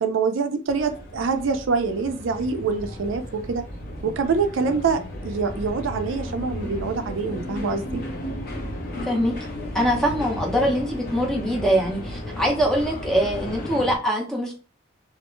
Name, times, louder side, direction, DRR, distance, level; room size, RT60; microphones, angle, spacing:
voice 1, 0.0-3.6 4.0-8.0, right 5 dB, 80° right, 8 dB, 0.4 m, -25 dB
sound 1, 0.7-14.0, left 1 dB, 50° left, 0.7 m, -34 dB
voice 2, 9.0-9.3 9.7-14.5, equal, 5° left, -1 dB, 0.6 m, -23 dB
2.4 x 2.1 x 3.0 m, 0.37 s
head